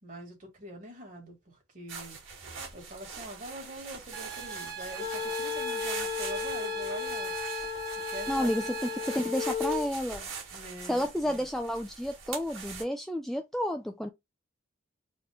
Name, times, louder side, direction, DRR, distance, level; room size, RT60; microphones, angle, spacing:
voice 1, 0.0-1.4 1.7-2.2 2.7-7.3 8.1-8.8 10.5-11.5, right 1 dB, 45° right, 2.1 m, -43 dB
sound 1, 1.9-12.8, right 5 dB, 90° right, 1.9 m, -43 dB
sound 2, 4.1-9.2, right 6 dB, 20° right, 1.2 m, -40 dB
sound 3, 5.0-9.9, left 8 dB, 45° left, 0.9 m, -35 dB
voice 2, 8.3-8.8 9.0-10.3 10.9-14.1, equal, ahead, 0.3 m, -31 dB
4.2 x 2.7 x 3.5 m
head